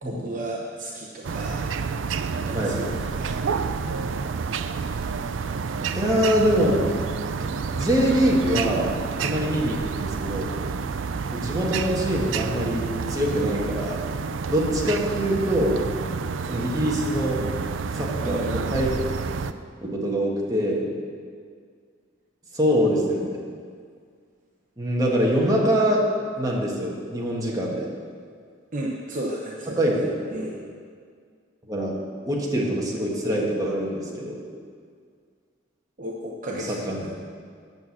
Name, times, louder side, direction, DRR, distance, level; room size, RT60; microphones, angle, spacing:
voice 1, 0.0-1.6 2.4-3.5 9.1-9.3 18.2-19.0 28.7-29.8 30.3-30.6 36.0-37.1, right 1 dB, 45° right, -2 dB, 0.9 m, -34 dB
sound 1, 1.2-19.5, right 5 dB, 90° right, 0.4 m, -29 dB
voice 2, 5.9-6.8 7.7-8.9 9.2-10.5 11.3-14.0 14.5-15.7 16.5-17.4 17.9-18.4 18.7-18.9 19.8-20.9 22.5-23.4 24.8-26.0 26.4-27.9 29.8-30.0 30.3-30.5 31.6-31.9 32.2-34.4 36.5-37.0, equal, 20° right, -3 dB, 1.6 m, -24 dB
9.0 x 6.3 x 7.3 m, 2.1 s
head